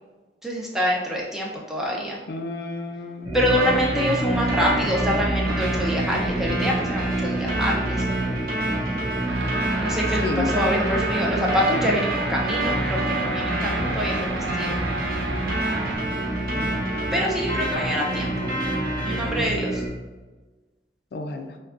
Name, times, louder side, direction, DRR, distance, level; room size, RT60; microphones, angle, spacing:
voice 1, 0.4-2.2 3.3-8.1 9.8-14.8 17.1-18.5 19.0-19.8, equal, ahead, -3 dB, 0.5 m, -26 dB
voice 2, 2.3-3.4 10.2-10.5 16.5-16.9 21.1-21.6, left 3 dB, 60° left, 5 dB, 0.3 m, -31 dB
sound 1, 3.2-19.9, right 1 dB, 20° right, 1.3 m, -29 dB
sound 2, 3.5-19.5, right 1 dB, 55° right, 1.0 m, -30 dB
sound 3, 9.3-16.0, right 3 dB, 80° right, 0.5 m, -31 dB
6.1 x 2.2 x 2.5 m, 1.2 s
head